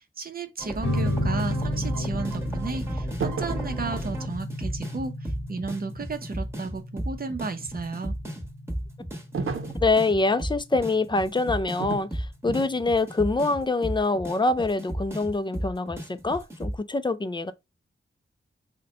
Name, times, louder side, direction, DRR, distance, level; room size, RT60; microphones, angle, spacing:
voice 1, 0.0-8.2, right 4 dB, 45° right, 0.7 m, -34 dB
sound 1, 0.6-16.8, right 1 dB, 10° right, 1.2 m, -34 dB
sound 2, 0.8-11.8, left 1 dB, 55° left, 0.8 m, -33 dB
sound 3, 3.2-3.8 9.3-9.9 11.8-12.1 12.5-12.8, right 4 dB, 80° right, 0.7 m, -31 dB
voice 2, 9.8-17.5, left 3 dB, 20° left, 0.4 m, -25 dB
4.0 x 2.2 x 3.8 m
wide cardioid pair, 105°, 21 cm